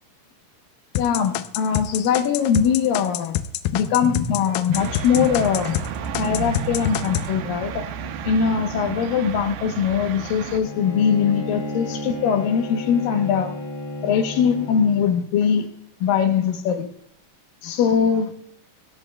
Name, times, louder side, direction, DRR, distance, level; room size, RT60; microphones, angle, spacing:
sound 1, 1.0-5.9 6.2-7.3, left 12 dB, 90° left, 2.0 m, -26 dB
voice 1, 1.0-3.4 3.7-5.8 6.2-7.8 8.3-13.5 14.0-15.7 16.0-16.9 17.6-18.3, left 7 dB, 70° left, 6 dB, 2.3 m, -21 dB
sound 2, 4.7-10.6, right 7 dB, 85° right, 2.9 m, -31 dB
Bowed string instrument, 10.6-15.3, left 1 dB, 45° left, 1.8 m, -32 dB
20.5 x 11.0 x 2.2 m, 0.71 s
omnidirectional pair, 4.7 m